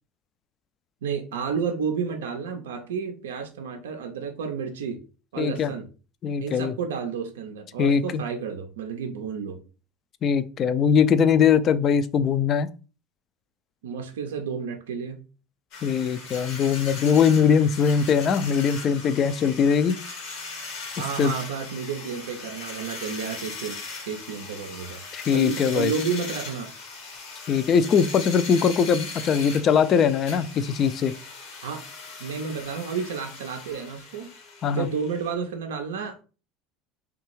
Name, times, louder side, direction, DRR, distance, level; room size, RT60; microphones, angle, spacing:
voice 1, 1.0-5.0 5.3-5.9 6.4-9.6 13.8-15.2 21.0-23.8 24.1-25.0 25.3-26.7 31.6-31.8 32.2-34.3 34.7-36.2, right 6 dB, 80° right, 0.4 m, -31 dB
voice 2, 5.4-5.7 6.2-6.7 7.8-8.2 10.2-12.7 15.8-20.0 21.2-21.3 25.1-25.9 27.5-31.1 34.6-34.9, left 7 dB, 45° left, 0.3 m, -21 dB
sound 1, 15.7-35.3, left 4 dB, 65° left, 0.8 m, -39 dB
2.6 x 2.3 x 3.0 m
hypercardioid pair, 75°, 0 cm